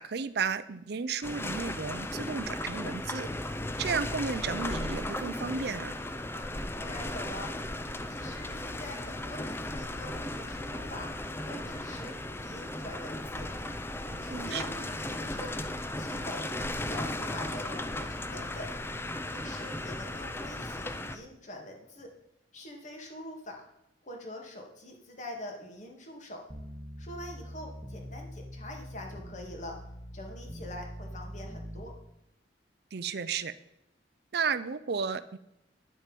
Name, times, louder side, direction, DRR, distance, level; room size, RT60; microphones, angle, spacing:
voice 1, 0.0-3.3 3.8-5.9 14.3-14.6 32.9-33.5 34.3-35.4, right 5 dB, 60° right, 14 dB, 0.5 m, -33 dB
sound 1, 1.2-21.2, left 1 dB, 15° left, 0.5 m, -36 dB
voice 2, 6.8-7.5 8.1-11.1 11.4-13.5 14.1-15.6 16.0-18.7 19.3-22.1 22.5-23.7 24.0-26.4 27.0-29.8 30.1-31.9, left 1 dB, 40° left, 2 dB, 2.3 m, -44 dB
sound 2, 26.5-31.8, equal, 5° right, 1.3 m, -43 dB
10.5 x 7.5 x 5.2 m, 0.87 s
head